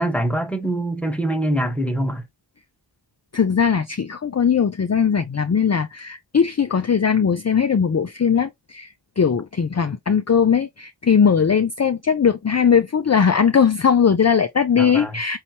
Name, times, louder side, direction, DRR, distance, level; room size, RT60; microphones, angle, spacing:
voice 1, 0.0-2.3 14.8-15.2, right 1 dB, 5° left, 1.2 m, -24 dB
voice 2, 3.3-15.4, left 7 dB, 35° left, 0.5 m, -19 dB
5.6 x 2.8 x 2.8 m
wide cardioid pair, 55°, 45 cm